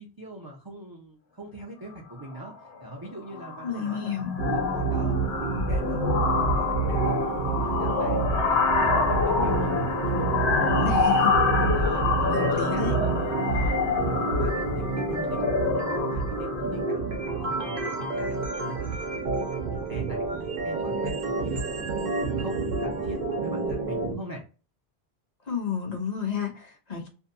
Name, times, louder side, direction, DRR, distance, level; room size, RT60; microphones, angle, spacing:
voice 1, 0.0-4.1 4.4-7.1 7.4-9.1 9.4-11.1 11.8-13.1 13.5-13.8 14.0-17.0 17.3-18.4 18.6-18.9 19.2-19.6 19.9-22.0 22.3-24.4, right 1 dB, 30° right, 0 dB, 0.4 m, -41 dB
sound 1, 2.2-2.5 2.8-3.1 3.3-18.2, left 5 dB, 75° left, 0.8 m, -27 dB
voice 2, 3.6-4.3 10.8-11.3 12.3-13.0 25.4-27.1, left 7 dB, 40° left, 2 dB, 0.9 m, -31 dB
sound 2, 4.4-24.2, right 4 dB, 60° right, 0.7 m, -28 dB
2.7 x 2.2 x 2.5 m, 0.34 s
omnidirectional pair, 1.1 m